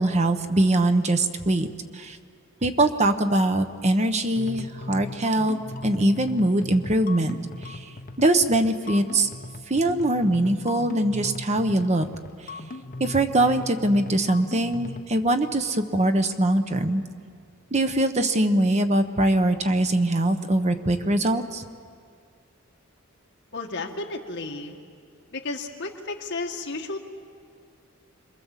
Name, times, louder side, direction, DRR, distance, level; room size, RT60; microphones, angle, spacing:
voice 1, 0.0-1.7 1.9-2.2 2.6-5.6 5.8-7.4 7.6-7.9 8.2-9.3 9.7-12.1 13.0-17.0 17.7-21.6, right 1 dB, 35° right, 8 dB, 1.0 m, -22 dB
sound 1, 4.4-15.0, left 2 dB, 40° left, 1.0 m, -38 dB
voice 2, 23.5-24.8 25.3-27.0, left 3 dB, 60° left, 2 dB, 2.0 m, -33 dB
27.0 x 22.5 x 7.4 m, 2.2 s
head